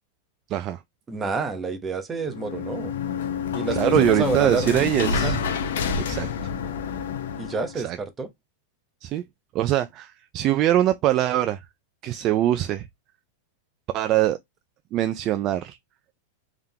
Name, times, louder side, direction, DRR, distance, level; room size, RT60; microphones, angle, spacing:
voice 1, 1.1-2.9 3.5-5.4 7.4-8.3, right 4 dB, 15° right, 0.8 m, -29 dB
sound 1, 2.2-7.8, left 6 dB, 80° left, 0.8 m, -28 dB
voice 2, 3.7-5.4 6.1-6.3 7.8-8.0 9.0-9.2 9.5-11.6 12.0-12.9 13.9-14.4 14.9-15.8, right 13 dB, 30° right, 0.3 m, -22 dB
3.7 x 3.5 x 2.7 m
supercardioid pair, 155°, 0 cm